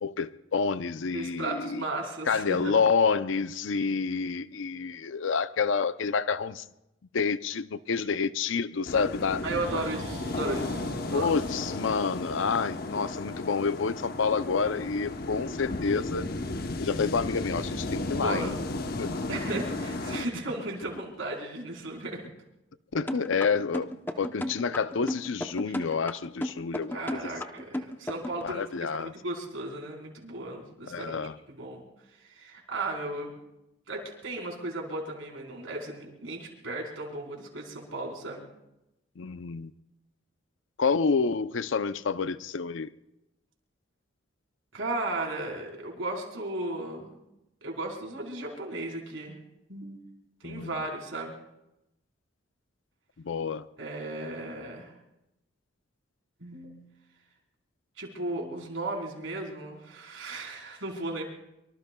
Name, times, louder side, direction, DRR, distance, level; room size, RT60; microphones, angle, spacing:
voice 1, 0.0-1.8 2.3-6.6 7.1-9.4 11.1-16.2 16.8-18.6 19.0-19.1 22.9-27.0 28.4-29.1 30.9-31.3 39.2-39.7 40.8-42.9 50.4-50.7 53.2-53.7, left 5 dB, 75° left, 13 dB, 0.5 m, -28 dB
voice 2, 1.1-2.7 9.4-10.8 11.1-11.3 18.2-18.6 19.3-22.3 25.7-25.8 26.9-31.2 31.5-33.3 33.9-38.5 44.7-47.1 47.6-49.4 49.7-50.0 50.4-51.4 53.8-54.9 56.4-56.9 58.0-61.2, right 2 dB, 85° right, -1 dB, 4.1 m, -35 dB
sound 1, 8.8-20.2, left 2 dB, 50° left, 0.9 m, -34 dB
sound 2, 9.6-13.9, right 2 dB, 45° right, 3.5 m, -48 dB
sound 3, 23.1-28.4, left 1 dB, 10° left, 0.7 m, -33 dB
24.5 x 24.5 x 2.3 m, 0.90 s
head